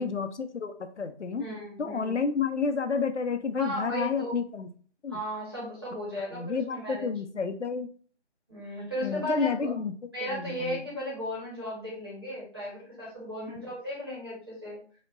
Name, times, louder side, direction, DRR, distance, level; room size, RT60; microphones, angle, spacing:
voice 1, 0.0-1.5 1.8-4.7 5.0-5.2 6.3-7.9 9.0-9.9 10.2-10.8 13.5-13.6, left 5 dB, 85° left, 8 dB, 0.7 m, -30 dB
voice 2, 1.4-2.1 3.6-4.3 5.1-7.1 8.5-9.7 10.1-14.8, equal, 20° right, -6 dB, 1.4 m, -35 dB
5.0 x 2.8 x 2.6 m, 0.43 s
figure-of-eight pair, 180°, 34 cm